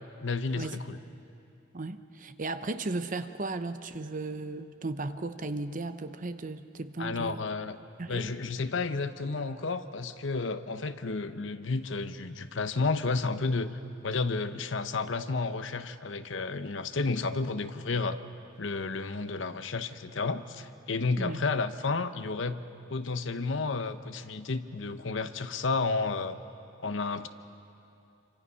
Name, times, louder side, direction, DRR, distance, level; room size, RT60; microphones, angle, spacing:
voice 1, 0.2-1.0 7.0-7.8 8.1-18.2 18.6-22.6 22.9-26.4 26.8-27.3, left 3 dB, 70° left, 10 dB, 0.8 m, -31 dB
voice 2, 1.7-7.4 8.0-8.3 21.2-21.4, right 2 dB, 40° right, 10 dB, 0.8 m, -35 dB
26.5 x 25.5 x 5.6 m, 2.7 s
head